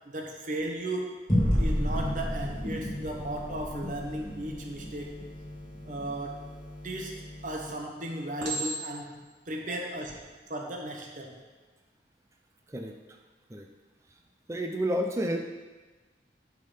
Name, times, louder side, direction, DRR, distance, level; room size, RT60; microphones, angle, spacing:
voice 1, 0.0-1.2 1.6-5.2 5.8-6.5 6.8-10.2 10.5-11.4, right 1 dB, 45° right, 1 dB, 1.0 m, -36 dB
sound 1, 1.3-6.1, equal, 25° left, 2.0 m, -30 dB
sound 2, 1.5-7.7, left 1 dB, 50° left, 1.7 m, -45 dB
Chink clink, 6.9-7.4 8.4-9.2 9.9-10.2, right 2 dB, 90° right, 2.4 m, -35 dB
voice 2, 14.5-15.4, equal, 15° right, 3 dB, 0.5 m, -30 dB
8.3 x 3.8 x 5.5 m, 1.3 s
head